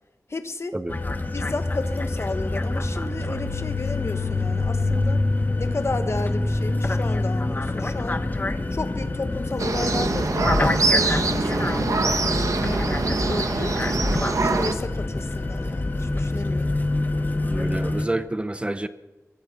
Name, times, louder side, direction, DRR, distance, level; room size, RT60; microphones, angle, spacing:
voice 1, 0.3-0.8 1.3-5.3 5.6-8.3 8.7-14.0 14.4-16.8, left 3 dB, 55° left, 9 dB, 1.2 m, -33 dB
sound 1, 0.9-18.1, left 2 dB, 35° left, 1.0 m, -26 dB
sound 2, 9.6-14.7, right 3 dB, 75° right, 1.1 m, -24 dB
voice 2, 17.5-18.9, right 1 dB, 20° right, 12 dB, 0.7 m, -28 dB
15.5 x 13.0 x 7.1 m, 1.1 s
wide cardioid pair, 85°, 6 cm